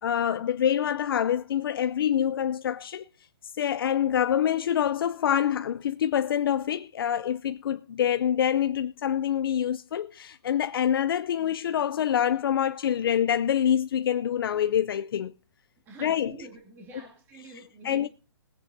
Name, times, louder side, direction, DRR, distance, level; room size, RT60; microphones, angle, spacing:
voice 1, 0.0-3.0 3.6-15.3 16.0-16.3 17.5-18.1, left 9 dB, 55° left, 0.5 m, -26 dB
voice 2, 15.9-18.1, right 2 dB, 15° right, 2.2 m, -47 dB
21.5 x 9.5 x 2.7 m
hypercardioid pair, 155°, 14 cm